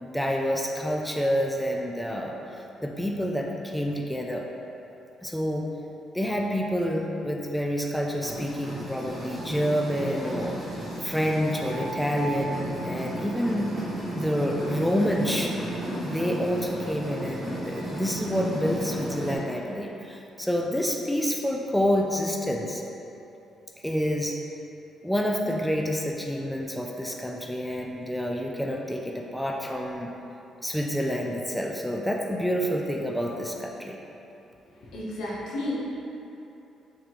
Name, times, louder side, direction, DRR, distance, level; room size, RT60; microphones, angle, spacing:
voice 1, 0.0-4.5 5.2-5.7 6.1-10.7 11.0-13.7 14.1-15.5 16.0-22.8 23.8-24.4 25.0-30.1 30.6-34.0, equal, 5° left, 0 dB, 0.3 m, -28 dB
sound 1, 8.2-19.4, right 1 dB, 40° right, 1.1 m, -34 dB
voice 2, 34.8-35.7, left 2 dB, 75° left, -6 dB, 0.9 m, -32 dB
3.5 x 3.4 x 3.0 m, 3.0 s
cardioid pair, 90°, 0 cm